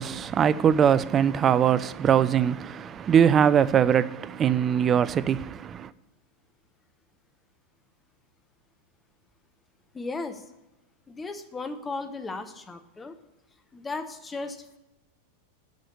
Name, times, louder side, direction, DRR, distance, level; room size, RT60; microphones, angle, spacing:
voice 1, 0.0-5.9, right 8 dB, 25° right, 0.4 m, -22 dB
voice 2, 9.9-10.4 11.1-13.1 13.7-14.8, left 3 dB, 15° left, 0.9 m, -36 dB
8.4 x 5.5 x 7.9 m
figure-of-eight pair, 90°, 0 cm